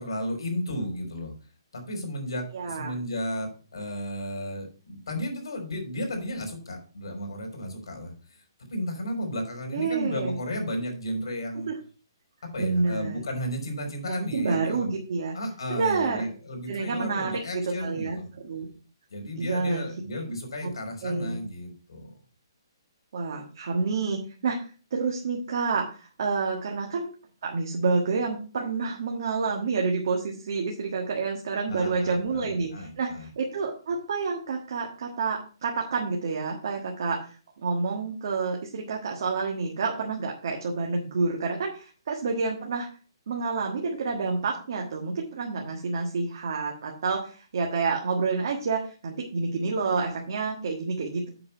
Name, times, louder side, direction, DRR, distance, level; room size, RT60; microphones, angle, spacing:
voice 1, 0.0-1.3 1.7-8.4 8.7-11.7 12.5-14.9 15.3-18.3 19.1-22.1 31.7-33.3, equal, 75° left, 3 dB, 4.0 m, -33 dB
voice 2, 2.5-3.0 9.7-10.4 11.7-11.8 12.6-13.2 14.1-15.4 15.7-16.3 16.7-18.7 19.4-19.8 20.6-20.7 21.0-21.4 23.1-24.6 24.9-27.1 27.4-37.2 37.6-42.9 43.3-51.3, right 4 dB, 50° right, 0 dB, 1.6 m, -28 dB
7.7 x 5.8 x 5.5 m, 0.37 s
hypercardioid pair, 175°, 3 cm